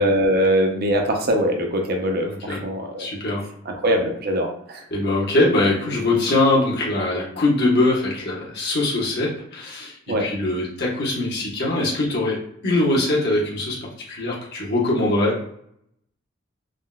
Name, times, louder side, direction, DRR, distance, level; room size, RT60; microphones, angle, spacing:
voice 1, 0.0-3.1 3.7-4.8 10.1-10.3, equal, 50° right, 2 dB, 0.6 m, -22 dB
voice 2, 2.2-2.6 3.0-3.4 4.9-9.9 10.2-15.4, left 2 dB, 55° left, -4 dB, 0.9 m, -22 dB
3.6 x 2.2 x 2.2 m, 0.69 s
head